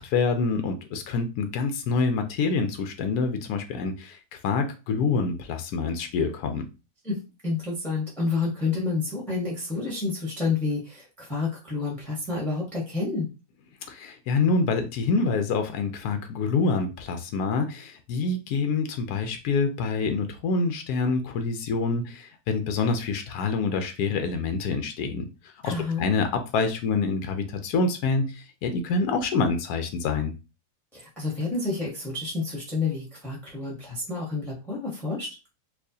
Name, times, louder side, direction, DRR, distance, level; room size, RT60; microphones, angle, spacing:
voice 1, 0.0-4.2 4.4-6.7 13.9-25.3 25.6-25.7 26.0-30.3, left 4 dB, 80° left, 7 dB, 1.2 m, -26 dB
voice 2, 7.0-13.3 25.6-26.1 30.9-35.3, left 3 dB, ahead, -3 dB, 0.8 m, -29 dB
4.5 x 2.4 x 2.7 m, 0.29 s
omnidirectional pair, 1.6 m